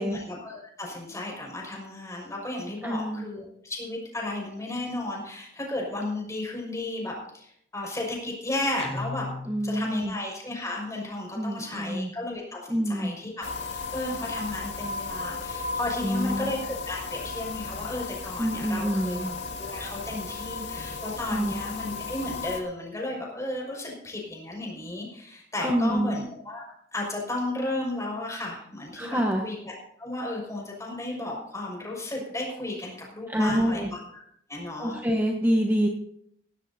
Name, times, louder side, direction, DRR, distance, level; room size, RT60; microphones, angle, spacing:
voice 1, 0.0-9.3 9.6-13.4 13.7-19.2 19.6-29.7 30.0-34.2 34.5-35.0, left 2 dB, 20° left, -2 dB, 5.9 m, -34 dB
voice 2, 2.8-3.2 9.5-10.1 11.3-12.1 12.7-13.1 16.0-16.5 18.4-19.3 21.3-21.5 25.6-26.2 28.9-29.4 33.3-33.9 34.8-35.9, equal, 10° right, 0 dB, 1.2 m, -26 dB
Guitar, 8.8-10.0, left 3 dB, 35° left, 1.0 m, -37 dB
sound 1, 13.4-22.6, left 4 dB, 90° left, 2.1 m, -35 dB
17.5 x 16.5 x 2.8 m, 0.71 s
head